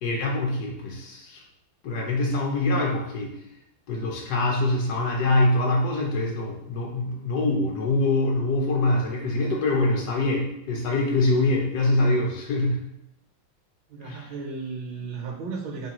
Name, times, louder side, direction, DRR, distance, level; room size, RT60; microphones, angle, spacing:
voice 1, 0.0-1.4 1.8-3.3 3.9-12.8 14.0-14.3, left 2 dB, 70° left, -1 dB, 0.9 m, -24 dB
voice 2, 13.9-15.9, right 4 dB, 70° right, 0 dB, 1.2 m, -34 dB
5.4 x 2.3 x 2.9 m, 0.81 s
omnidirectional pair, 2.3 m